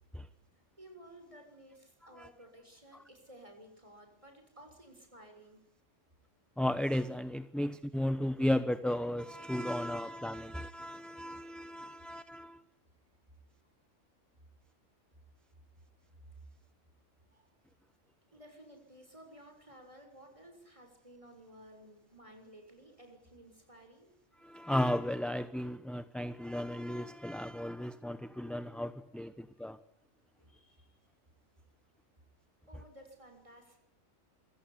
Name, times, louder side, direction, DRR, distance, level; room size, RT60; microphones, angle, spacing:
voice 1, 0.8-5.6 17.3-17.5 18.3-24.1 30.4-30.9 32.7-33.8, right 1 dB, 25° right, 4 dB, 6.8 m, -56 dB
voice 2, 6.6-12.6 24.4-29.8, left 1 dB, ahead, 11 dB, 0.8 m, -34 dB
26.5 x 16.0 x 10.0 m, 0.81 s
omnidirectional pair, 1.3 m